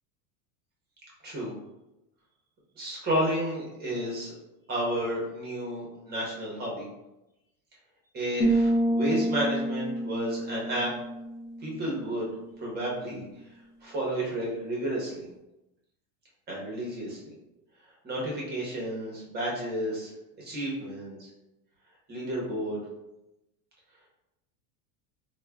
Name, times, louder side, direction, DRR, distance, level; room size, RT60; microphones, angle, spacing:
voice 1, 2.8-4.4 4.7-6.9 8.1-10.9 11.6-12.3 12.6-13.3 13.8-15.2 16.5-17.3 18.0-20.1 20.4-21.3 22.1-22.8, right 1 dB, 20° right, -4 dB, 0.7 m, -31 dB
sound 1, 8.4-12.1, right 1 dB, 15° left, 0.5 m, -28 dB
4.6 x 2.1 x 2.2 m, 0.93 s
supercardioid pair, 155°, 46 cm